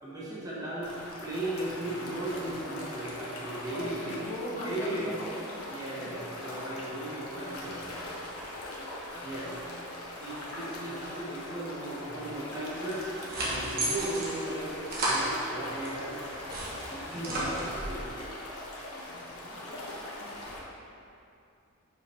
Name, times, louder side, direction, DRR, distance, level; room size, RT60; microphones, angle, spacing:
voice 1, 0.0-0.9 1.2-4.2 4.6-5.1 5.7-7.8 9.2-9.5 10.1-13.1 13.4-16.2 16.9-18.3, right 1 dB, 15° right, -8 dB, 1.1 m, -36 dB
sound 1, 0.8-20.6, left 1 dB, 85° left, 1.2 m, -41 dB
voice 2, 3.7-5.3 5.9-6.3 7.3-8.3 9.1-9.8 17.0-17.6 19.1-20.1, left 1 dB, 30° left, -6 dB, 1.2 m, -42 dB
sound 2, 12.9-15.9 16.3-18.0, right 1 dB, 45° right, 1.3 m, -33 dB
5.5 x 4.9 x 5.5 m, 2.6 s
head